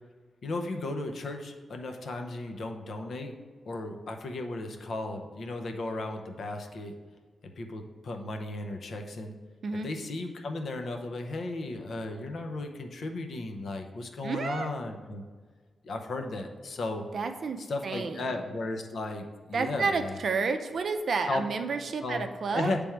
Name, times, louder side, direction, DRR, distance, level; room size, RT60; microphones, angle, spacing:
voice 1, 0.4-3.3 3.7-6.9 7.4-9.3 9.8-15.2 15.8-17.0 17.6-20.2 21.3-21.4 22.0-22.3 22.5-22.8, left 2 dB, 60° left, 4 dB, 0.7 m, -35 dB
voice 2, 14.2-14.7 17.1-18.4 19.5-22.7, right 4 dB, 55° right, 6 dB, 0.5 m, -30 dB
8.6 x 3.4 x 4.5 m, 1.5 s
wide cardioid pair, 135°, 0 cm